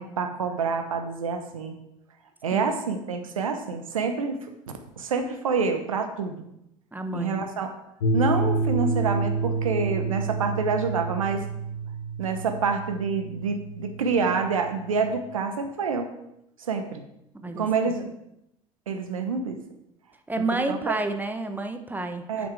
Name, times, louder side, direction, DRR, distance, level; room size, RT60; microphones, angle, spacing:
voice 1, 0.0-1.7 2.4-4.4 5.0-6.4 7.1-7.7 8.1-11.4 12.2-16.1 16.6-17.0 17.6-18.1 18.9-19.6 20.7-21.0 22.3-22.5, right 5 dB, 80° right, 6 dB, 1.0 m, -27 dB
voice 2, 6.9-7.4 17.3-17.6 20.3-22.5, right 2 dB, 10° right, 7 dB, 1.2 m, -30 dB
sound 1, 8.0-15.1, right 3 dB, 75° left, 1.7 m, -29 dB
9.2 x 7.6 x 4.8 m, 0.82 s
figure-of-eight pair, 70°, 17 cm